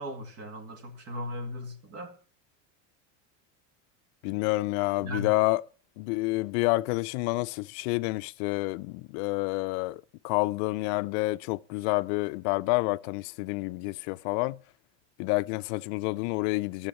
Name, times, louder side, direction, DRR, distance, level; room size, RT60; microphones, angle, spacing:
voice 1, 0.0-2.2 5.0-5.3, left 1 dB, 40° right, 2.0 m, -37 dB
voice 2, 4.2-5.6 6.0-14.6 15.2-16.9, left 22 dB, 60° left, 0.5 m, -28 dB
14.0 x 7.2 x 7.2 m
cardioid pair, 160°, 38 cm